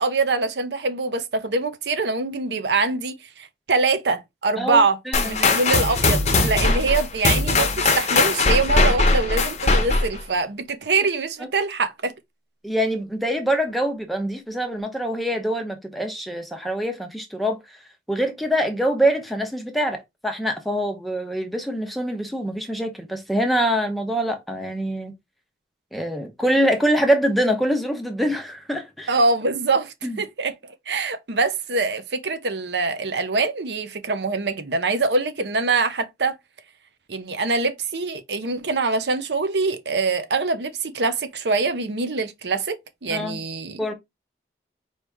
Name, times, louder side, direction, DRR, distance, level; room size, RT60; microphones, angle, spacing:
voice 1, 0.0-5.0 5.2-12.1 29.1-30.5 30.9-36.3 37.1-43.8, right 3 dB, 80° right, 0.7 m, -24 dB
voice 2, 4.6-5.4 12.6-17.6 18.1-25.1 25.9-29.1 30.0-30.2 43.1-43.4 43.8-43.9, equal, ahead, 0.8 m, -24 dB
sound 1, 5.1-10.2, left 3 dB, 40° left, 0.8 m, -20 dB
4.6 x 2.9 x 3.5 m
head